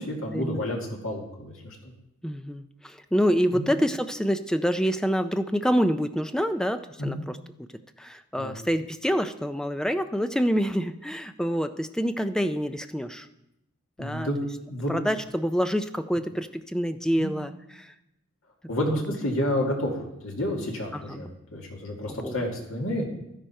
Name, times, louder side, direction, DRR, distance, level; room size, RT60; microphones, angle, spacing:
voice 1, 0.0-1.9 3.5-3.7 7.0-7.2 8.4-8.5 14.0-14.9 17.2-17.3 18.7-23.1, equal, 75° left, 0 dB, 2.2 m, -30 dB
voice 2, 2.2-7.4 8.0-13.3 14.0-14.3 14.9-17.9 18.8-19.0 20.9-21.3 22.1-22.4, equal, 5° left, 9 dB, 0.4 m, -27 dB
12.5 x 10.0 x 4.4 m, 0.86 s
head